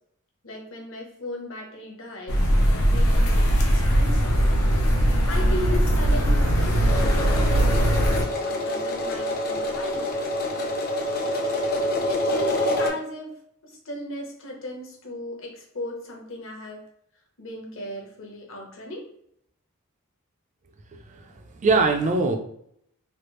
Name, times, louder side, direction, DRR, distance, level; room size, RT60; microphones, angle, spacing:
voice 1, 0.4-4.5 5.3-10.3 12.1-13.4 13.8-16.8 17.4-19.0, left 1 dB, 65° left, 0 dB, 0.9 m, -36 dB
sound 1, 2.3-8.2, equal, 85° left, 0.7 m, -20 dB
sound 2, 6.9-12.9, left 1 dB, 45° left, 0.6 m, -27 dB
voice 2, 20.9-22.4, right 3 dB, 35° right, 4 dB, 0.4 m, -23 dB
3.2 x 2.4 x 3.0 m, 0.69 s
head